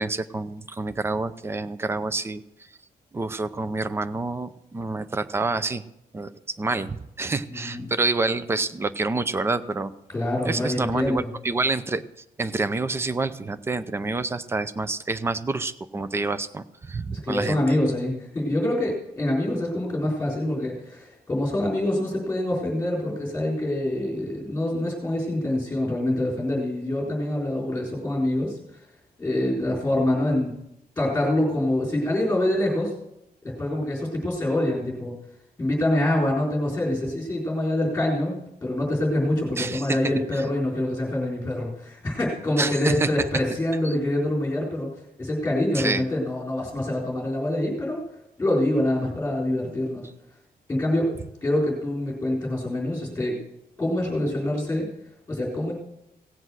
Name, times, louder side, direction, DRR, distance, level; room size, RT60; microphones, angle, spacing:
voice 1, 0.0-2.4 3.1-5.8 6.1-6.3 6.6-9.9 10.4-12.0 12.4-17.6 39.6-40.0 42.6-43.1 43.8-43.9 45.7-46.0, right 3 dB, 15° right, 13 dB, 0.5 m, -27 dB
voice 2, 7.5-7.8 10.1-11.3 17.1-28.8 29.2-30.5 31.0-32.9 33.4-35.1 35.6-44.9 45.2-48.0 48.4-50.0 50.7-53.4 53.8-54.9 55.3-55.7, left 1 dB, 10° left, -4 dB, 4.1 m, -25 dB
17.0 x 7.8 x 6.2 m, 0.83 s
wide cardioid pair, 160°, 16 cm